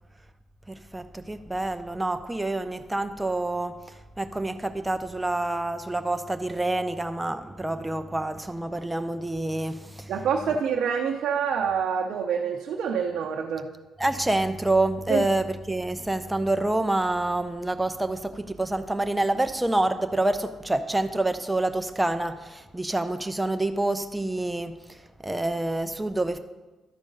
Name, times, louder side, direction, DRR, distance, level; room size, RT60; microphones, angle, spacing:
voice 1, 0.7-3.8 4.2-10.1 14.0-26.4, right 2 dB, 10° right, 9 dB, 0.6 m, -27 dB
voice 2, 10.1-13.7 15.1-15.2, right 6 dB, 70° right, 1 dB, 0.7 m, -26 dB
12.0 x 4.7 x 5.4 m, 1.2 s
cardioid pair, 90°, 0 cm